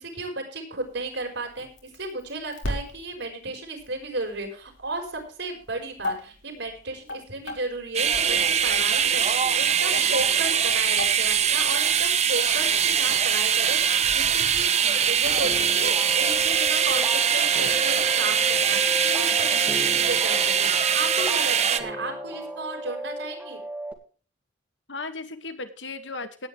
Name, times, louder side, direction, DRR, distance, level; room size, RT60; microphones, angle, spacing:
voice 1, 0.0-23.6, right 2 dB, 70° right, 3 dB, 5.5 m, -34 dB
sound 1, 0.8-15.7, left 1 dB, 90° left, 5.1 m, -39 dB
sound 2, 7.9-21.8, right 8 dB, 35° right, 1.0 m, -22 dB
voice 2, 14.8-15.2 19.5-19.9 24.9-26.5, left 3 dB, 70° left, 7 dB, 2.1 m, -37 dB
sound 3, 15.4-23.9, equal, 10° right, 1.9 m, -35 dB
18.0 x 9.8 x 3.4 m, 0.38 s
head